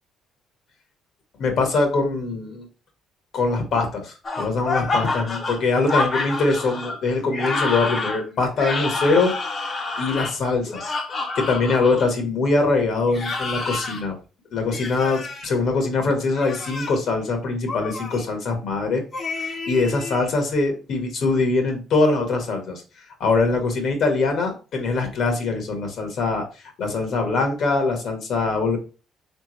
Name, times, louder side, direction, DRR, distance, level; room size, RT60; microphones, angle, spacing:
voice 1, 1.4-2.6 3.3-9.3 9.6-10.9 11.3-14.1 14.5-19.0 19.4-22.8 23.2-26.4 26.8-28.8, left 3 dB, 65° left, 4 dB, 1.5 m, -23 dB
sound 1, 4.2-12.1 13.1-14.0 14.7-15.5 16.3-17.0 17.7-18.2 19.1-20.3, left 3 dB, 40° left, 0.9 m, -28 dB
3.8 x 3.5 x 3.2 m, 0.34 s
cardioid pair, 90°, 0 cm